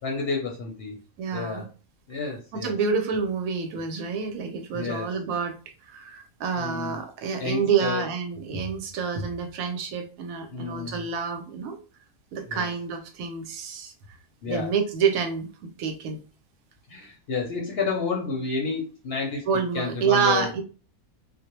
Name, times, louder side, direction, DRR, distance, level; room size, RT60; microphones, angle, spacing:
voice 1, 0.0-1.0 1.3-1.7 2.1-2.8 4.7-5.1 6.6-7.0 7.4-8.0 10.5-11.1 12.5-12.7 14.4-14.7 16.9-19.4 19.7-20.6, left 4 dB, 60° left, 0 dB, 0.7 m, -30 dB
voice 2, 1.2-1.6 2.5-5.5 5.8-11.8 12.3-13.9 14.5-16.2 19.5-20.6, right 6 dB, 80° right, 6 dB, 1.0 m, -28 dB
2.3 x 2.0 x 2.9 m, 0.35 s
omnidirectional pair, 1.5 m